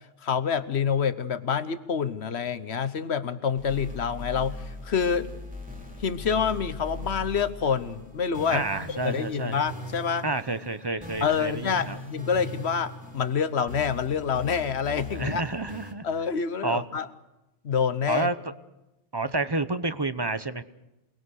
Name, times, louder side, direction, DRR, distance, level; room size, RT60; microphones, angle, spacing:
voice 1, 0.2-5.3 6.0-10.3 11.2-15.4 16.0-17.1 17.6-18.3, left 6 dB, 65° left, 13 dB, 1.3 m, -27 dB
sound 1, 3.6-15.9, left 1 dB, 5° right, 2.6 m, -40 dB
voice 2, 8.5-9.6 10.2-12.0 15.1-16.1 16.6-16.8 18.1-18.4 19.1-20.6, right 2 dB, 25° right, 12 dB, 0.8 m, -29 dB
28.0 x 20.0 x 6.5 m, 0.95 s
omnidirectional pair, 1.2 m